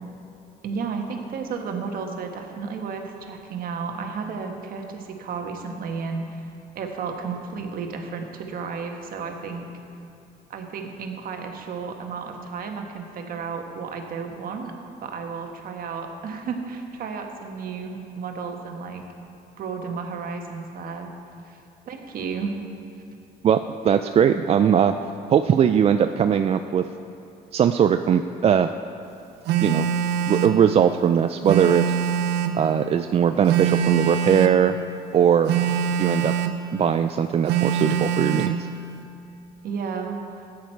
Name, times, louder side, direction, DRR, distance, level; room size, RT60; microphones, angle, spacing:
voice 1, 0.6-6.4 6.7-9.7 10.5-14.7 15.0-19.0 19.6-21.1 21.4-21.6 21.8-22.6 35.7-35.9 39.6-40.4, right 5 dB, 60° right, 3 dB, 1.4 m, -33 dB
voice 2, 23.4-24.9 25.3-26.9 27.5-28.7 29.6-29.9 30.3-31.8 32.5-34.7 35.1-35.5 36.0-36.3 36.7-38.7, right 8 dB, 35° right, 8 dB, 0.3 m, -20 dB
Telephone, 29.5-30.6 31.5-32.6 33.5-34.6 35.5-36.6 37.5-38.6, right 8 dB, 90° right, 0.7 m, -23 dB
14.0 x 9.4 x 4.5 m, 2.8 s
cardioid pair, 110°, 17 cm